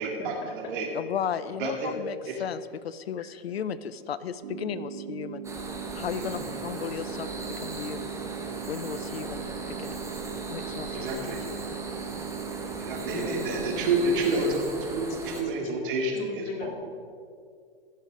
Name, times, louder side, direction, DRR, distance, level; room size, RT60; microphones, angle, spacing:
voice 1, 0.0-0.9 1.6-1.9 2.3-2.4 6.1-6.4 10.9-11.4 12.8-14.6 14.9-16.7, right 3 dB, 60° right, 1 dB, 2.6 m, -29 dB
voice 2, 0.9-5.4 5.9-8.1 8.7-10.0 10.5-11.6, left 8 dB, 85° left, 15 dB, 0.6 m, -35 dB
sound 1, 4.4-14.4, right 7 dB, 80° right, 0.7 m, -39 dB
sound 2, 5.4-15.4, right 3 dB, 10° right, 1.3 m, -38 dB
voice 3, 13.0-13.9 14.3-14.7 15.3-15.7 16.2-16.7, left 3 dB, 45° left, 2 dB, 2.2 m, -37 dB
15.5 x 6.9 x 5.0 m, 2.2 s
hypercardioid pair, 120°, 30 cm